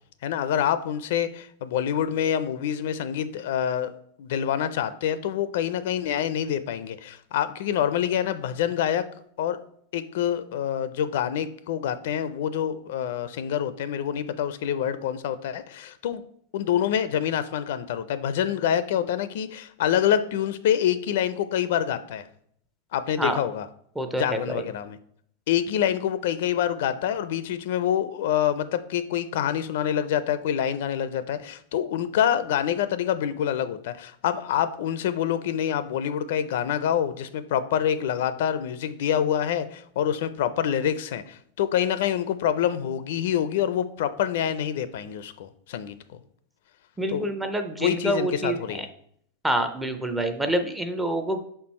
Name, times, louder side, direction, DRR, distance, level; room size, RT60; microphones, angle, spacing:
voice 1, 0.2-3.9 4.2-9.0 9.4-9.6 9.9-16.2 16.5-22.2 22.9-23.7 24.1-25.0 25.5-46.2 47.1-47.3 47.8-48.9, left 9 dB, 60° left, 13 dB, 0.4 m, -26 dB
voice 2, 24.0-24.6 47.0-48.9 49.4-51.4, right 1 dB, 5° right, 6 dB, 0.4 m, -27 dB
5.7 x 4.4 x 4.2 m, 0.66 s
supercardioid pair, 175°, 0 cm